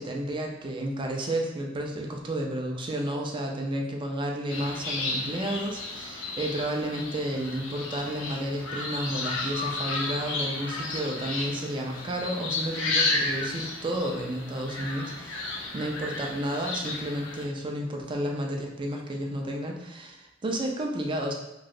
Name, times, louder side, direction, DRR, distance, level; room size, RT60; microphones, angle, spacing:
voice 1, 0.0-21.3, right 1 dB, 25° right, 1 dB, 0.4 m, -31 dB
sound 1, 4.5-17.5, left 3 dB, 70° left, 0.5 m, -33 dB
3.0 x 2.7 x 2.5 m, 0.90 s
head